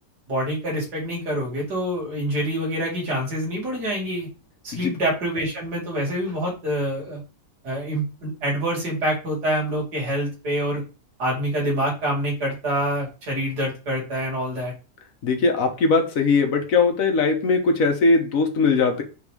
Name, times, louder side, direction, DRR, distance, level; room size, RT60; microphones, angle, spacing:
voice 1, 0.3-4.3 4.6-7.2 7.6-10.8 11.2-14.7, right 1 dB, 65° right, -3 dB, 3.0 m, -26 dB
voice 2, 15.2-19.0, left 4 dB, 50° left, 4 dB, 1.4 m, -20 dB
5.6 x 3.7 x 4.9 m, 0.33 s
omnidirectional pair, 1.9 m